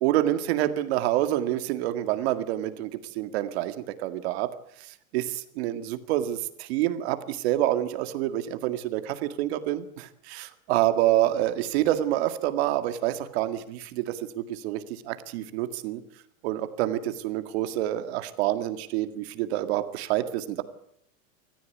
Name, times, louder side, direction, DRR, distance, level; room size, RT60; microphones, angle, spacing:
voice 1, 0.0-2.9 3.2-3.7 4.0-4.5 5.1-5.2 5.6-6.4 6.7-7.2 7.4-9.0 9.4-9.8 10.3-10.4 10.7-14.0 14.6-14.8 15.1-16.0 16.4-17.0 17.2-20.2, right 13 dB, 50° right, 9 dB, 2.0 m, -26 dB
26.0 x 14.5 x 9.2 m, 0.70 s
supercardioid pair, 165°, 41 cm